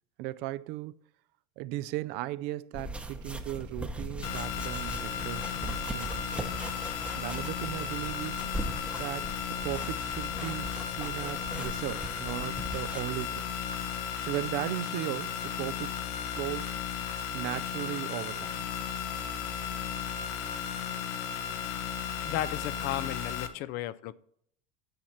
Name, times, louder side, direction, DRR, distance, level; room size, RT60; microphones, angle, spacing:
voice 1, 0.2-0.9 1.6-6.6 7.2-8.4 9.0-13.5 14.2-16.8 17.3-18.7, right 16 dB, 60° right, 0.4 m, -37 dB
sound 1, 2.7-13.0, right 1 dB, 5° right, 0.8 m, -40 dB
sound 2, 4.2-23.5, left 8 dB, 75° left, 1.1 m, -35 dB
voice 2, 22.2-24.1, left 13 dB, 55° left, 0.5 m, -34 dB
9.1 x 7.3 x 4.2 m
supercardioid pair, 135°, 19 cm